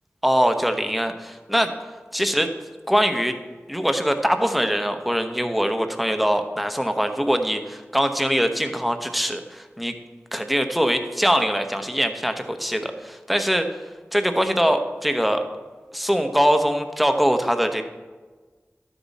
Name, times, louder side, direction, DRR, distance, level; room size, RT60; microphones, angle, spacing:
voice 1, 0.2-1.7 2.1-2.5 2.9-3.3 3.7-9.9 10.3-13.7 14.1-15.4 15.9-17.8, equal, ahead, 6 dB, 0.9 m, -22 dB
12.0 x 7.2 x 4.1 m, 1.4 s
wide cardioid pair, 40°, 5 cm